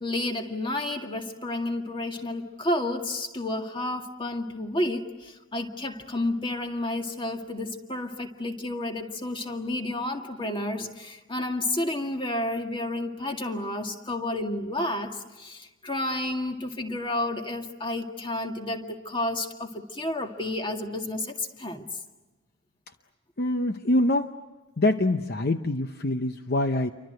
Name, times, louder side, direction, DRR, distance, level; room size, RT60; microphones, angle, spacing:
voice 1, 0.0-21.9, left 1 dB, 25° left, 4 dB, 2.0 m, -31 dB
voice 2, 23.4-24.3 24.8-26.9, left 1 dB, 50° left, 7 dB, 0.8 m, -24 dB
29.5 x 24.5 x 7.9 m, 1.2 s
head